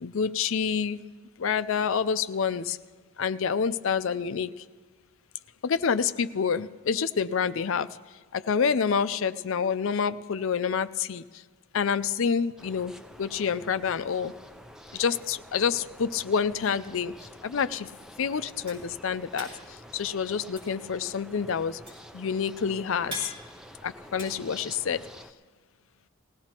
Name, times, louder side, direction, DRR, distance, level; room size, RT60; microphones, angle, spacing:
voice 1, 0.0-1.0 1.4-2.8 3.2-4.5 5.6-7.9 8.3-11.2 11.7-12.9 13.2-14.3 15.0-17.1 17.4-17.9 18.2-19.5 19.9-21.8 22.1-23.2 23.8-25.0, left 6 dB, 60° left, 13 dB, 0.4 m, -27 dB
sound 1, 12.6-25.3, equal, ahead, 0.4 m, -48 dB
sound 2, 18.7-25.2, equal, 25° right, 5.3 m, -44 dB
20.0 x 16.5 x 2.9 m, 1.5 s
head